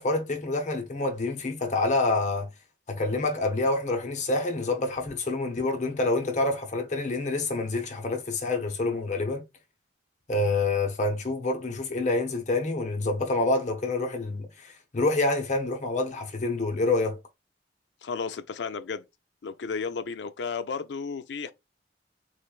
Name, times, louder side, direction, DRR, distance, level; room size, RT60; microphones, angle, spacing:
voice 1, 0.0-2.5 2.9-9.4 10.3-17.2, left 2 dB, 40° left, 0.9 m, -27 dB
voice 2, 18.0-19.0 19.4-21.5, left 5 dB, 80° left, 0.4 m, -33 dB
3.9 x 3.2 x 2.4 m
head